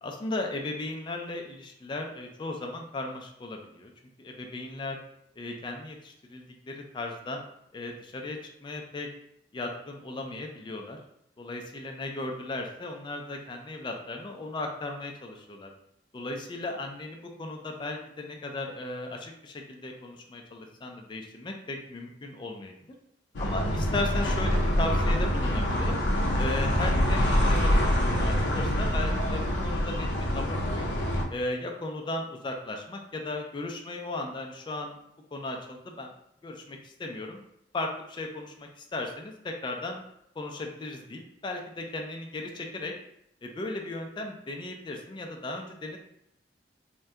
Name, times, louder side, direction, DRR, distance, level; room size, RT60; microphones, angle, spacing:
voice 1, 0.0-3.9 4.2-5.0 5.4-7.4 7.7-9.1 9.5-11.0 11.4-15.7 16.1-22.7 23.4-26.0 26.4-30.1 30.3-30.9 31.3-35.0 35.3-36.1 36.4-37.4 37.7-40.0 40.4-42.9 43.4-46.0, left 2 dB, 25° left, 2 dB, 0.3 m, -36 dB
sound 1, 23.3-31.2, equal, 85° left, 0.5 m, -25 dB
2.6 x 2.2 x 3.4 m, 0.77 s
head